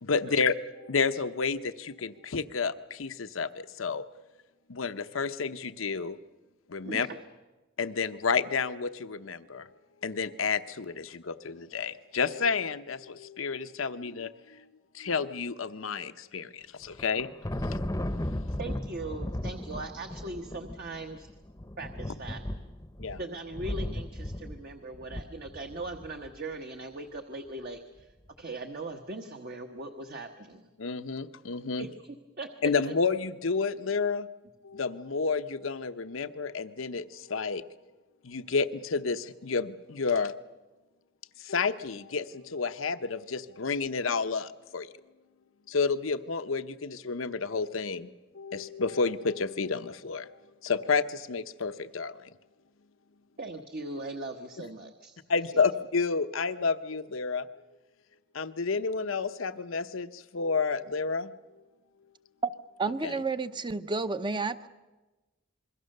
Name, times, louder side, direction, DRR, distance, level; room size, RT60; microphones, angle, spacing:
voice 1, 0.0-4.0 4.7-6.2 6.7-7.1 7.8-9.7 10.0-14.7 14.9-17.3 17.7-17.8 23.0-23.2 30.8-31.9 32.6-34.3 34.6-37.6 38.2-40.3 41.4-44.9 45.7-48.1 48.3-50.3 50.6-52.3 55.3-57.5 58.3-61.3 63.0-63.2, left 5 dB, 85° left, 11 dB, 0.9 m, -30 dB
voice 2, 6.8-7.2 18.6-21.3 21.8-22.4 23.2-28.1 28.4-30.7 31.8-31.9 32.4-32.9 53.4-55.2 55.5-55.6, right 2 dB, 50° right, 5 dB, 1.3 m, -39 dB
Thunder, 16.8-26.3, left 1 dB, 15° left, 0.8 m, -36 dB
voice 3, 62.8-64.7, right 4 dB, 25° right, 11 dB, 0.7 m, -30 dB
27.5 x 22.0 x 6.7 m, 1.2 s
head